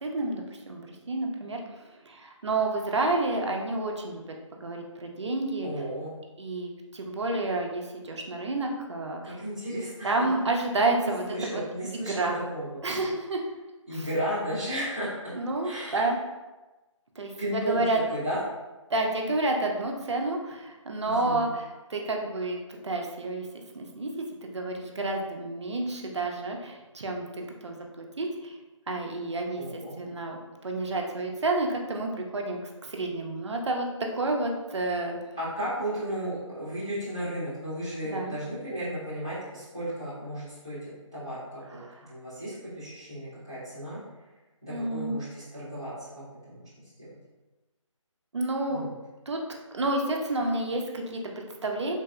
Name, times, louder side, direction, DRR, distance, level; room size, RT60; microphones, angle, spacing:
voice 1, 0.0-4.2 4.6-5.7 6.4-9.4 10.0-11.6 11.9-12.4 12.8-13.4 13.9-14.1 15.3-16.2 17.2-18.0 18.9-22.6 22.8-23.5 23.7-28.5 28.9-30.4 30.6-32.6 32.9-35.2 38.0-38.4 44.7-45.2 48.3-48.9 49.3-49.4 49.7-52.0, right 2 dB, 60° right, 1 dB, 0.5 m, -30 dB
voice 2, 5.6-6.1 9.2-10.3 10.7-13.0 13.9-15.1 15.6-16.1 17.4-17.8 18.1-18.4 21.0-21.5 29.5-29.9 35.3-40.8 41.1-44.0 44.6-46.7 47.0-47.1 48.7-48.9, equal, 10° left, -15 dB, 0.4 m, -34 dB
3.2 x 2.6 x 2.3 m, 1.1 s
figure-of-eight pair, 165°, 17 cm